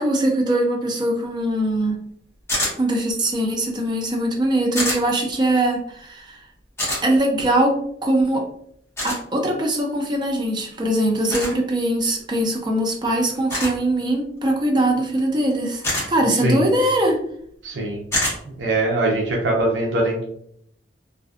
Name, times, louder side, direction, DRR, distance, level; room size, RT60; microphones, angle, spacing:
voice 1, 0.0-2.0 2.8-6.4 7.0-8.5 9.0-17.2, right 1 dB, 25° right, 1 dB, 0.4 m, -21 dB
sound 1, 2.5-2.7 4.7-5.0 6.8-7.0 9.0-9.2 11.3-11.5 13.5-13.8 15.8-16.1 18.1-18.4, left 1 dB, 15° left, 0.8 m, -24 dB
voice 2, 16.3-16.7 17.6-18.0 18.5-20.2, right 2 dB, 80° right, -2 dB, 0.5 m, -22 dB
2.5 x 2.1 x 2.4 m, 0.68 s
head